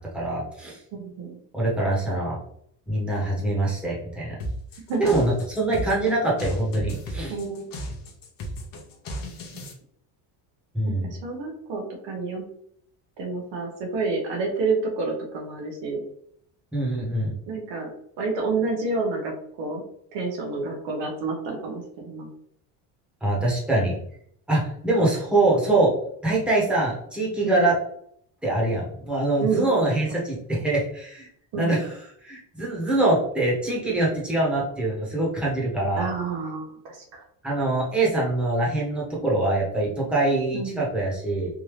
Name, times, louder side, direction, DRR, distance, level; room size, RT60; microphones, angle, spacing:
voice 1, 0.1-0.8 1.5-2.4 2.9-4.4 5.0-7.3 10.7-11.1 16.7-17.3 23.2-24.0 24.5-25.9 26.2-27.8 28.4-31.3 31.6-36.1 37.4-41.5, right 2 dB, ahead, -5 dB, 1.2 m, -24 dB
voice 2, 1.0-1.4 4.9-5.2 7.3-7.7 10.8-12.4 13.2-16.0 17.5-17.9 18.2-19.3 19.6-19.8 20.1-22.3 27.4-27.7 29.4-29.7 31.5-31.8 36.0-37.2 40.5-40.8, right 4 dB, 65° right, 1 dB, 1.1 m, -29 dB
sound 1, 4.4-9.7, equal, 45° left, 0.9 m, -34 dB
3.6 x 2.6 x 3.2 m, 0.68 s
cardioid pair, 125°, 47 cm